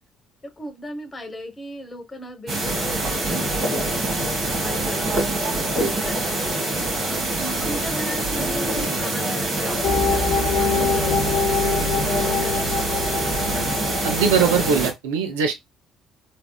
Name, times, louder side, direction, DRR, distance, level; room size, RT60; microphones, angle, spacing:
voice 1, 0.6-4.0 4.4-5.2 5.6-6.9 7.4-11.8 12.2-13.2, left 1 dB, 25° left, 1.0 m, -37 dB
sound 1, 2.5-14.9, right 2 dB, 50° right, 1.3 m, -25 dB
sound 2, 9.8-14.9, left 4 dB, 75° left, 0.6 m, -24 dB
voice 2, 13.9-15.5, right 6 dB, 70° right, 0.4 m, -21 dB
3.3 x 2.4 x 2.2 m
figure-of-eight pair, 45°, 0 cm